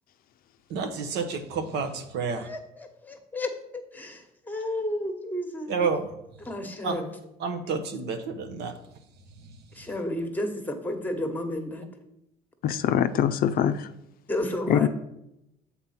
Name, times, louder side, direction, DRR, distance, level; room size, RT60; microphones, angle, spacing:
voice 1, 0.7-2.5 5.7-6.1 6.8-7.0 7.4-8.7, right 5 dB, 80° right, 7 dB, 1.0 m, -29 dB
voice 2, 2.3-5.7 6.4-7.1 9.7-11.9 14.3-14.9, left 1 dB, 10° left, 5 dB, 1.1 m, -32 dB
voice 3, 12.6-13.9 14.7-14.9, left 9 dB, 60° left, 10 dB, 0.5 m, -23 dB
7.2 x 4.2 x 5.7 m, 0.83 s
cardioid pair, 110°, 17 cm